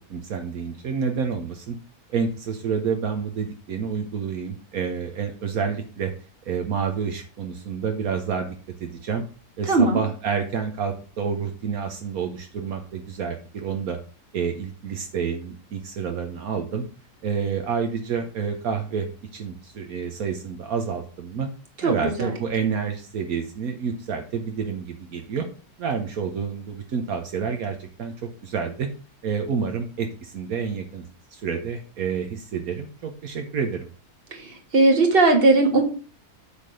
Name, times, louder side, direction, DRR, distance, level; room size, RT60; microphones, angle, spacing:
voice 1, 0.1-1.8 2.1-6.1 6.5-8.5 8.8-9.2 9.6-14.0 14.3-16.8 17.2-21.5 21.8-25.5 25.8-28.1 28.4-28.9 29.2-31.0 31.3-33.9, right 6 dB, 75° right, 5 dB, 1.4 m, -28 dB
voice 2, 9.7-10.0 21.8-22.3 34.4-35.8, right 3 dB, 40° right, 3 dB, 1.8 m, -18 dB
8.4 x 3.7 x 6.4 m, 0.38 s
omnidirectional pair, 1.6 m